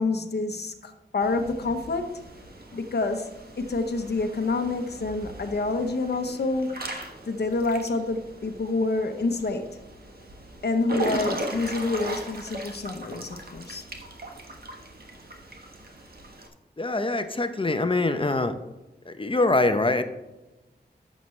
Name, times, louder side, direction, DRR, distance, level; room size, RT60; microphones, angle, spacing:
voice 1, 0.0-2.2 2.7-3.3 3.6-6.8 7.3-9.7 10.6-13.8, left 3 dB, 70° left, 5 dB, 0.9 m, -27 dB
Water / Splash splatter / Drip, 1.2-16.5, right 1 dB, 60° right, 1.4 m, -39 dB
voice 2, 16.8-18.5 19.1-20.0, left 2 dB, 30° left, 8 dB, 0.8 m, -24 dB
11.0 x 7.5 x 3.2 m, 1.0 s
wide cardioid pair, 80°, 18 cm